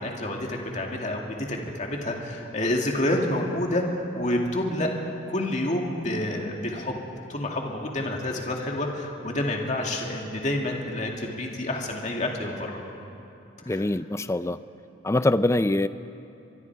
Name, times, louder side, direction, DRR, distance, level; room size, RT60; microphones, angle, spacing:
voice 1, 0.0-4.9 5.3-6.9 7.3-12.8 13.6-13.8, left 1 dB, 35° left, 0 dB, 2.3 m, -28 dB
voice 2, 13.7-14.6 15.0-15.9, left 2 dB, 15° left, 13 dB, 0.4 m, -23 dB
24.5 x 23.5 x 4.7 m, 2.8 s
head